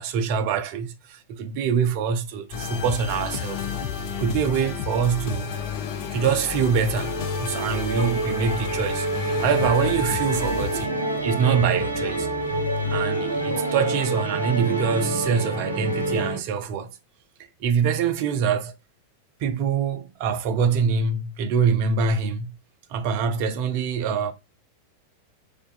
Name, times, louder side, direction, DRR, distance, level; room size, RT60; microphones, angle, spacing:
voice 1, 0.0-3.6 4.2-5.5 6.1-9.1 9.4-12.3 12.9-16.9 17.6-18.7 19.4-22.5 22.9-24.3, right 6 dB, 45° right, 0.3 m, -24 dB
sound 1, 2.5-10.9, left 7 dB, 45° left, 0.4 m, -31 dB
Musical instrument, 6.3-16.4, right 1 dB, 85° right, 0.6 m, -28 dB
2.5 x 2.2 x 2.2 m
figure-of-eight pair, 90°, 0 cm